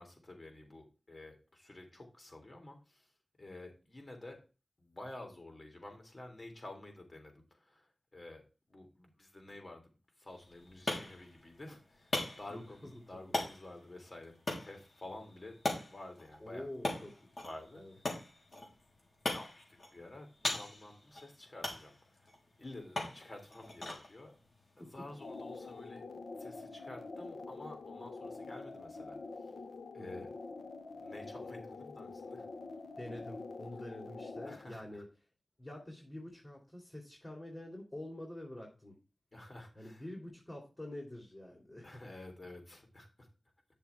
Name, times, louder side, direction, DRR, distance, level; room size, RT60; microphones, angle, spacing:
voice 1, 0.0-3.1 3.4-4.4 4.8-8.4 8.7-9.8 10.2-14.3 14.6-15.5 15.9-16.7 17.4-17.8 19.3-22.3 22.6-24.3 24.8-26.0 26.4-29.2 29.9-30.3 31.0-32.5 34.4-35.0 39.3-40.0 41.8-43.3, left 2 dB, 40° left, 3 dB, 3.3 m, -50 dB
sound 1, 10.3-25.9, left 2 dB, 60° left, 3.8 m, -42 dB
voice 2, 16.4-17.1 17.7-17.9 24.8-24.9 30.0-30.2 33.0-35.1 35.6-38.9 39.7-42.0, left 1 dB, 25° left, -1 dB, 2.7 m, -46 dB
sound 2, 25.1-34.7, left 3 dB, 90° left, 0.9 m, -46 dB
9.4 x 6.8 x 3.5 m, 0.33 s
wide cardioid pair, 80°, 0 cm